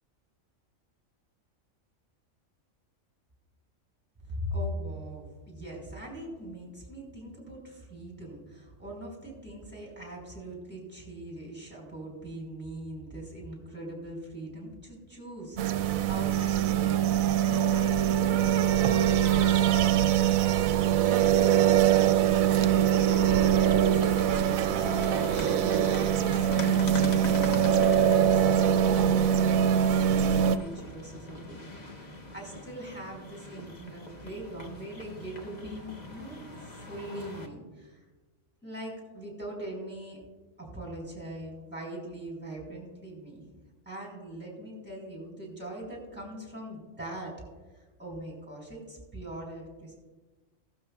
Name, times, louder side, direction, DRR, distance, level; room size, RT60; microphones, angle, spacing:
voice 1, 4.3-28.6 29.0-38.0 38.6-40.2 40.6-43.4 43.9-47.4 47.7-49.9, right 1 dB, 5° right, -3 dB, 4.0 m, -41 dB
sound 1, 15.6-30.6, right 10 dB, 80° right, 1.0 m, -23 dB
sound 2, 22.7-37.5, left 2 dB, 35° left, 1.0 m, -41 dB
16.0 x 12.5 x 2.3 m, 1.3 s
omnidirectional pair, 1.4 m